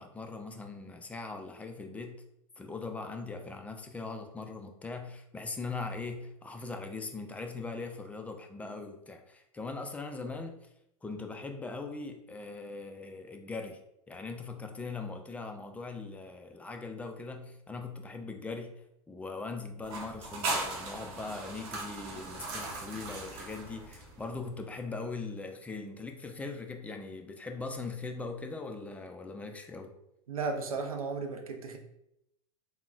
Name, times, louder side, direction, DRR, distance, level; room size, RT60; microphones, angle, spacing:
voice 1, 0.0-2.2 2.6-10.6 11.0-13.8 14.1-18.7 19.1-29.9, left 3 dB, 10° left, 4 dB, 0.3 m, -40 dB
sound 1, 19.8-24.4, right 3 dB, 55° right, 0.8 m, -38 dB
voice 2, 30.3-31.8, right 4 dB, 90° right, 4 dB, 0.5 m, -34 dB
3.5 x 2.1 x 2.4 m, 0.80 s
hypercardioid pair, 100°, 18 cm